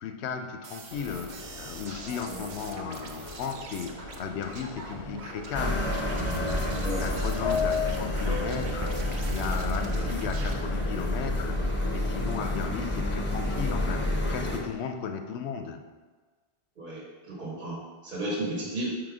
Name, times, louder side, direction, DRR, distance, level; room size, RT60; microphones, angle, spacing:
voice 1, 0.0-5.9 6.3-15.8, left 7 dB, 80° left, 6 dB, 0.8 m, -36 dB
sound 1, 0.6-10.5, right 4 dB, 80° right, 0.9 m, -44 dB
Subway metro underground, 0.9-14.7, left 5 dB, 50° left, 0.4 m, -39 dB
sound 2, 5.5-14.6, left 1 dB, 15° left, 0.6 m, -29 dB
voice 2, 16.8-19.0, right 1 dB, 50° right, -4 dB, 1.2 m, -34 dB
5.0 x 3.9 x 4.8 m, 1.4 s
omnidirectional pair, 1.1 m